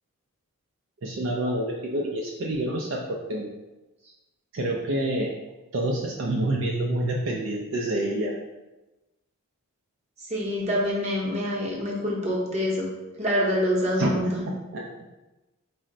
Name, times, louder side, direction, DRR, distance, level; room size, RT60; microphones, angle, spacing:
voice 1, 1.0-3.5 4.5-5.3 5.7-8.4 14.0-14.9, right 1 dB, 60° right, -1 dB, 0.4 m, -28 dB
voice 2, 10.3-12.9 13.2-14.5, equal, 30° right, -3 dB, 0.8 m, -26 dB
4.2 x 2.1 x 3.7 m, 1.0 s
head